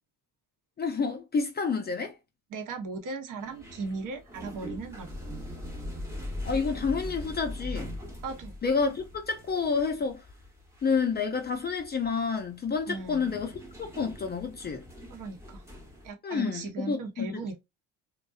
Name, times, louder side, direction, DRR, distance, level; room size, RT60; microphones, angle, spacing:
voice 1, 0.8-2.1 6.4-7.9 8.6-10.2 10.8-13.5 13.8-14.9 16.2-17.4, left 5 dB, 25° left, 0.4 m, -29 dB
voice 2, 2.5-5.2 8.2-8.6 12.9-13.4 15.1-15.6 16.0-17.6, right 3 dB, 50° right, 0.8 m, -37 dB
sound 1, 3.4-16.1, left 1 dB, 5° right, 0.8 m, -41 dB
2.5 x 2.1 x 2.3 m
supercardioid pair, 80°, 40 cm